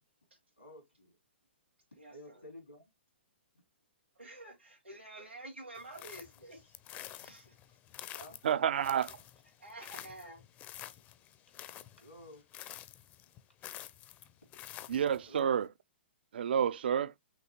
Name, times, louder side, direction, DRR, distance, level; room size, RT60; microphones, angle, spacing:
voice 1, 0.6-1.2 2.1-2.8 7.3-7.4 8.1-8.4 11.5-12.5 15.3-15.5, left 1 dB, 90° left, 2.6 m, -53 dB
voice 2, 2.0-2.4 4.2-6.7 7.2-7.6 9.6-10.4, right 2 dB, 85° right, 1.8 m, -49 dB
sound 1, 5.7-15.4, left 12 dB, 25° left, 0.5 m, -49 dB
voice 3, 8.4-9.2 14.9-15.7 16.3-17.1, right 8 dB, 60° right, 0.4 m, -29 dB
5.9 x 2.8 x 2.8 m
figure-of-eight pair, 115°, 6 cm